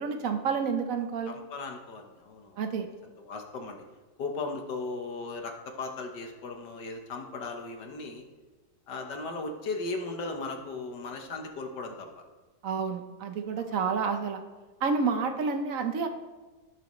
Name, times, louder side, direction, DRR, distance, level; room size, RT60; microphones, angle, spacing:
voice 1, 0.0-1.4 2.6-2.9 12.6-14.4 14.8-16.1, right 5 dB, 60° right, 7 dB, 0.9 m, -29 dB
voice 2, 1.3-2.6 3.0-3.8 4.2-8.2 8.9-12.1 13.6-13.8, left 3 dB, 65° left, 4 dB, 1.6 m, -37 dB
17.0 x 6.2 x 3.1 m, 1.3 s
omnidirectional pair, 2.1 m